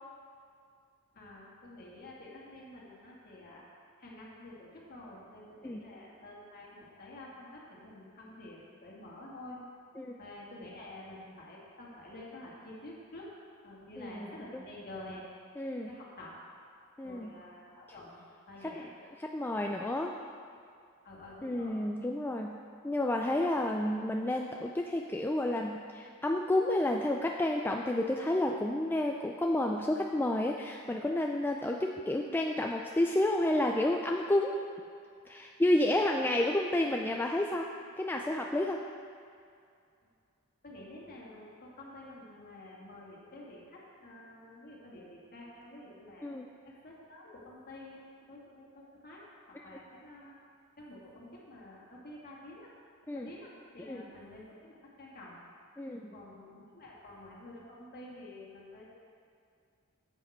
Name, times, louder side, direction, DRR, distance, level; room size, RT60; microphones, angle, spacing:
voice 1, 1.1-3.6 4.0-9.6 10.2-13.3 13.6-15.3 15.9-16.4 17.0-18.9 21.0-21.8 35.9-36.1 40.6-46.3 46.6-48.0 48.3-50.4 50.8-52.7 53.1-55.4 56.1-59.0, left 1 dB, 45° left, -4 dB, 2.3 m, -49 dB
voice 2, 14.0-14.6 15.6-15.9 17.0-17.4 18.6-18.8 19.2-20.2 21.4-22.6 22.8-34.6 35.3-37.7 38.0-38.8 46.2-46.5 49.5-49.6 53.1-53.3 53.9-54.0 55.8-56.1, left 1 dB, 10° left, 1 dB, 0.3 m, -30 dB
11.0 x 8.2 x 4.4 m, 2.4 s
head